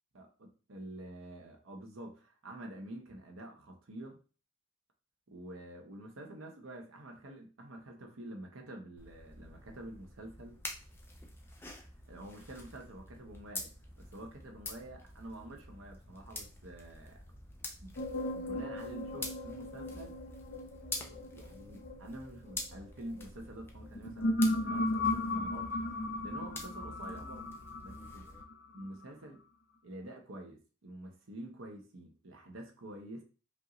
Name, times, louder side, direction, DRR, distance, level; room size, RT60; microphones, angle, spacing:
voice 1, 0.1-4.2 5.3-10.6 12.1-17.2 17.8-20.2 21.1-28.3 28.7-29.4 29.8-33.2, right 1 dB, 90° right, 2 dB, 0.9 m, -48 dB
sound 1, 9.0-28.4, left 2 dB, 10° left, 0.6 m, -47 dB
sound 2, 18.0-23.2 23.8-28.8, left 1 dB, 50° left, 0.6 m, -36 dB
5.2 x 2.6 x 3.0 m, 0.36 s
head